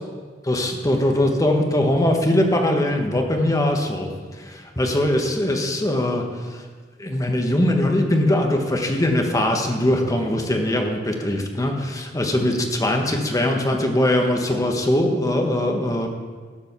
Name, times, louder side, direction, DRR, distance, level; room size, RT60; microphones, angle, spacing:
voice 1, 0.4-4.1 4.5-6.2 6.5-6.6 7.0-16.1, left 1 dB, 20° left, 3 dB, 1.1 m, -21 dB
12.0 x 5.2 x 6.8 m, 1.5 s
head